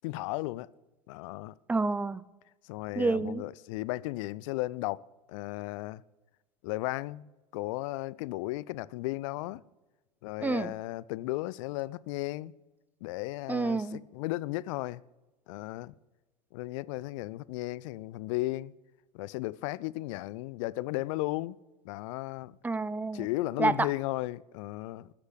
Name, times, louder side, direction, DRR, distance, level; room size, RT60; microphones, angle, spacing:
voice 1, 0.0-0.7 1.1-1.6 2.6-5.0 5.3-6.0 6.6-9.6 10.2-12.5 13.0-15.0 15.5-15.9 16.5-18.7 19.1-21.6 21.8-22.6 23.1-25.1, left 19 dB, 50° left, 0.5 m, -35 dB
voice 2, 1.7-2.2 3.0-3.4 10.4-10.7 13.5-14.0 22.6-23.3 23.6-23.7, right 3 dB, 10° right, 0.5 m, -28 dB
15.0 x 8.1 x 8.2 m
figure-of-eight pair, 80°, 21 cm